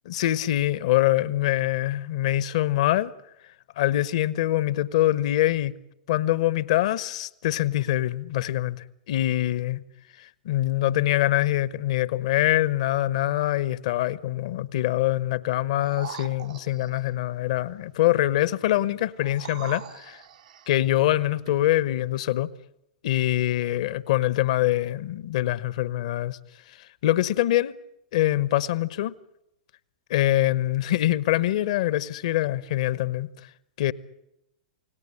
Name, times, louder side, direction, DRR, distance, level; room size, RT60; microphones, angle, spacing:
voice 1, 0.1-3.1 3.8-5.7 6.1-9.8 10.4-20.2 20.7-22.5 23.0-26.4 27.0-27.7 28.1-29.1 30.1-33.3 33.8-33.9, left 14 dB, 60° left, 1.1 m, -24 dB
sound 1, 15.8-17.1 19.2-20.8 21.5-21.6, right 7 dB, 70° right, 1.3 m, -41 dB
29.0 x 18.0 x 10.0 m
figure-of-eight pair, 100°, 4 cm